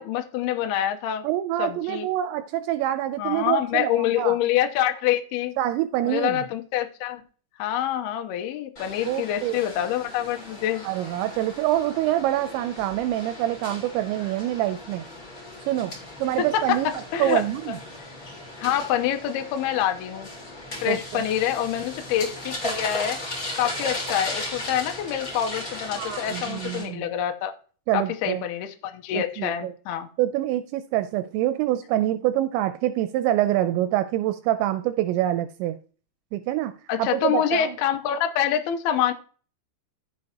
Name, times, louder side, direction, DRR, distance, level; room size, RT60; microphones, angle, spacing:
voice 1, 0.0-1.2 1.6-2.1 3.2-5.6 6.0-7.2 7.6-10.8 16.4-16.8 17.1-17.8 18.6-20.3 20.8-23.2 23.6-27.5 27.9-30.1 36.9-39.1, left 10 dB, 75° left, 2.6 m, -26 dB
voice 2, 1.2-4.4 5.6-6.4 9.1-9.6 10.8-15.0 15.7-15.9 16.2-16.9 17.2-17.8 20.9-21.2 26.0-27.1 27.9-28.4 29.1-29.7 30.2-35.8 36.3-36.7 37.0-37.8, right 13 dB, 85° right, 2.9 m, -26 dB
sound 1, 8.8-26.8, left 1 dB, 25° left, 2.1 m, -37 dB
15.0 x 6.7 x 2.9 m
omnidirectional pair, 5.2 m